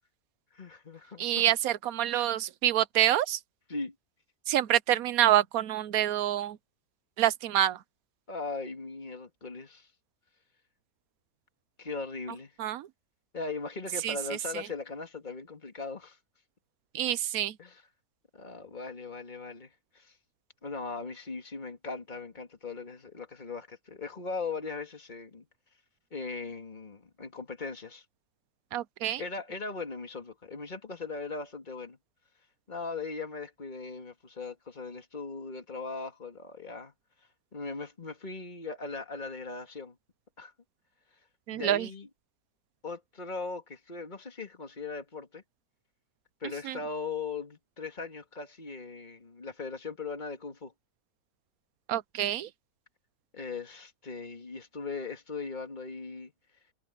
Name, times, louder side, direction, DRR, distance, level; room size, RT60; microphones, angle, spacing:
voice 1, 0.5-1.4 2.1-2.4 3.7-3.9 8.3-9.9 11.8-12.5 13.3-16.2 17.6-17.8 18.3-20.1 20.6-25.5 26.1-28.0 29.2-32.0 32.7-36.9 37.5-40.0 40.4-40.5 41.5-42.1 42.8-45.4 46.4-50.7 53.3-56.3, left 4 dB, 30° left, 2.5 m, -39 dB
voice 2, 1.2-3.4 4.5-6.6 7.2-7.8 12.6-12.9 14.0-14.2 16.9-17.5 28.7-29.2 41.5-41.9 46.6-46.8 51.9-52.5, right 12 dB, 75° right, 1.2 m, -27 dB
omnidirectional pair, 1.5 m